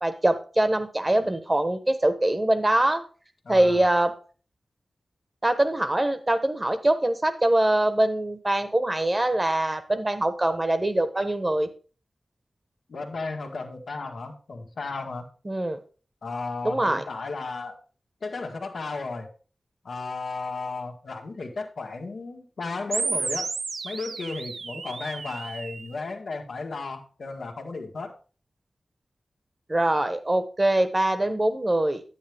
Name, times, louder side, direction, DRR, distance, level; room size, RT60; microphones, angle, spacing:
voice 1, 0.0-3.0 3.5-4.1 5.4-11.7 15.4-15.8 16.6-17.0 29.7-32.0, right 1 dB, 25° right, 9 dB, 1.1 m, -23 dB
voice 2, 3.4-3.8 12.9-15.3 16.2-17.8 18.2-19.3 19.8-23.5 23.8-28.2, left 3 dB, 90° left, 2 dB, 1.7 m, -34 dB
sound 1, 22.9-25.9, right 4 dB, 80° right, 0.4 m, -32 dB
9.4 x 9.3 x 3.5 m, 0.37 s
wide cardioid pair, 95°, 0 cm